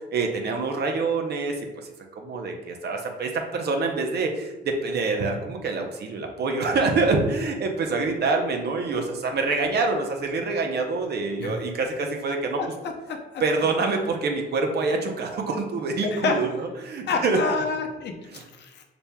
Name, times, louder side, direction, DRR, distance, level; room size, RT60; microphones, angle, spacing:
voice 1, 0.1-1.9 2.2-4.5 4.8-12.6 13.4-17.4 18.3-18.4, right 3 dB, 55° right, 3 dB, 0.6 m, -26 dB
voice 2, 12.6-13.4 16.0-16.5 17.1-18.8, left 4 dB, 60° left, 4 dB, 0.6 m, -28 dB
4.1 x 3.3 x 2.2 m, 1.1 s
cardioid pair, 90°, 20 cm